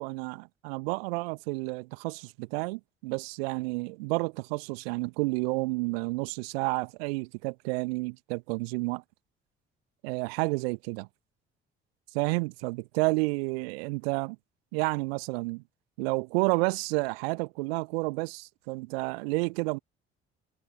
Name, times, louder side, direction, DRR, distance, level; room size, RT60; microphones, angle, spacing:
voice 1, 0.0-9.0 10.0-11.1 12.1-14.4 14.7-15.6 16.0-19.8, right 27 dB, 65° right, 1.7 m, -30 dB
figure-of-eight pair, 50°, 32 cm